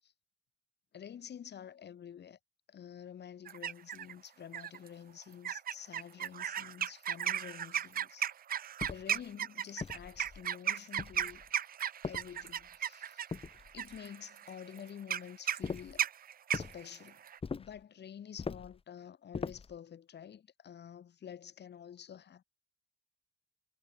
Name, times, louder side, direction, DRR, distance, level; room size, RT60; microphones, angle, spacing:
voice 1, 0.9-2.4 2.7-8.3 8.9-11.4 12.0-13.3 13.7-16.1 16.5-17.2 17.6-22.4, left 8 dB, 60° left, 6.5 m, -49 dB
Crows chattering, 3.5-4.1 4.5-4.9 5.4-17.4, right 9 dB, 45° right, 0.7 m, -36 dB
sound 1, 8.8-9.2 9.8-10.5 11.0-11.5 12.0-12.7 13.3-14.0 15.6-16.0 16.5-16.8 17.4-17.8 18.4-18.8 19.3-19.8, left 5 dB, 30° left, 1.1 m, -41 dB
cardioid pair, 90°, 20 cm